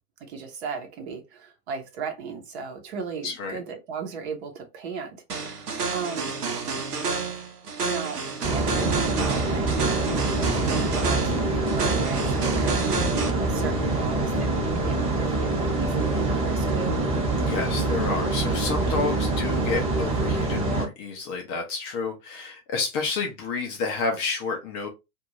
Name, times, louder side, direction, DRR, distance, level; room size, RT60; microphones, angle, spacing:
voice 1, 0.2-5.6 5.9-6.3 7.8-14.3 14.8-17.0, right 5 dB, 45° right, 1.0 m, -36 dB
voice 2, 3.2-3.6 17.4-24.9, left 4 dB, 25° left, 0.6 m, -30 dB
sound 1, 5.3-13.3, right 4 dB, 80° right, 0.9 m, -30 dB
sound 2, 8.4-20.9, right 2 dB, 10° right, 1.2 m, -25 dB
2.6 x 2.6 x 3.0 m
figure-of-eight pair, 110°, 46 cm